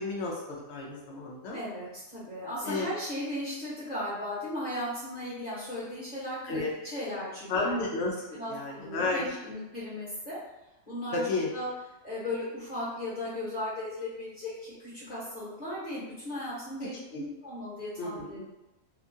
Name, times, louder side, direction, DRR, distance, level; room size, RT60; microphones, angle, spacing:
voice 1, 0.0-1.6 2.6-2.8 6.5-6.7 7.5-9.5 11.1-11.5 17.1-17.3 18.0-18.4, left 3 dB, 65° left, -3 dB, 0.7 m, -32 dB
voice 2, 1.5-7.7 8.3-10.4 10.9-11.2 11.5-11.7 12.0-18.4, left 1 dB, 35° left, -11 dB, 1.0 m, -36 dB
2.8 x 2.3 x 2.6 m, 0.99 s
omnidirectional pair, 1.5 m